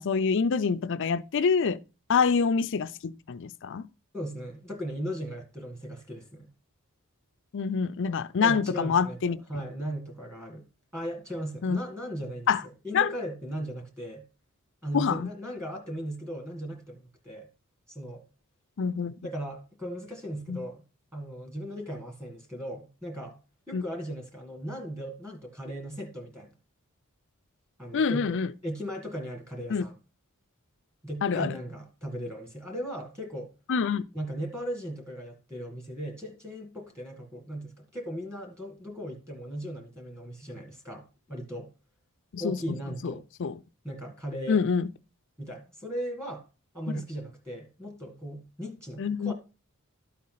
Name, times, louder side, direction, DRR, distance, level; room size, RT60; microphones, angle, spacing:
voice 1, 0.0-1.8 2.1-3.9 7.5-9.4 11.6-11.8 12.5-12.6 12.9-13.1 14.9-15.3 18.8-19.1 20.5-20.6 23.7-23.8 27.9-28.5 29.7-29.8 31.2-31.5 33.7-34.0 42.3-42.6 43.0-43.1 43.4-43.5 44.5-44.9 49.0-49.3, left 5 dB, 60° left, 0.5 m, -26 dB
voice 2, 4.1-6.5 8.4-10.7 10.9-14.3 14.8-17.5 17.9-18.2 19.2-20.8 21.1-23.4 23.7-26.5 27.8-28.4 28.6-30.0 31.0-33.5 34.1-41.7 42.4-43.2 43.8-44.6 45.4-46.5 46.7-49.3, equal, 15° right, 1.8 m, -37 dB
12.5 x 4.2 x 3.9 m
head